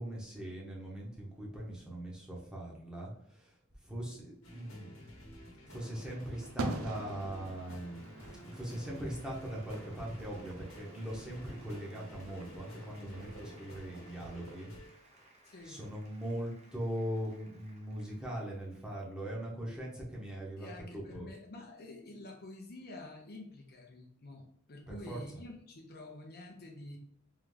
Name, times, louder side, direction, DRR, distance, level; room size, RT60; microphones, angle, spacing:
voice 1, 0.0-3.5 3.8-4.9 5.7-14.7 15.6-21.3 24.9-25.2, right 1 dB, 5° right, -4 dB, 1.1 m, -40 dB
sound 1, 4.4-14.9, left 1 dB, 75° left, 1.1 m, -52 dB
sound 2, 5.7-14.6, right 2 dB, 75° right, 0.5 m, -46 dB
Applause, 7.5-19.1, right 1 dB, 30° right, 0.8 m, -62 dB
voice 2, 15.4-15.8 20.6-27.0, left 2 dB, 50° left, 1 dB, 0.7 m, -48 dB
3.6 x 3.3 x 3.3 m, 0.67 s
head